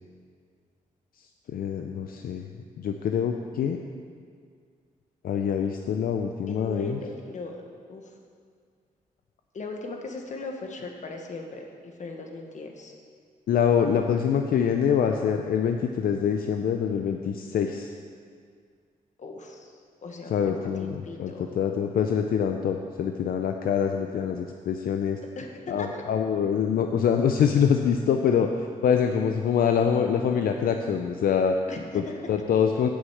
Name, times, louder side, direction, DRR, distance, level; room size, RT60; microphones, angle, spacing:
voice 1, 1.5-2.5 2.8-3.8 5.2-7.0 13.5-17.9 20.3-25.2 25.7-31.6 31.9-32.0 32.3-32.9, left 7 dB, 80° left, 5 dB, 0.5 m, -25 dB
voice 2, 6.5-7.6 7.9-8.1 9.5-12.9 19.2-19.7 20.0-21.7 25.4-26.0 31.7-32.2, left 3 dB, 55° left, 2 dB, 1.3 m, -38 dB
8.0 x 6.5 x 7.8 m, 2.1 s
cardioid pair, 85°, 15 cm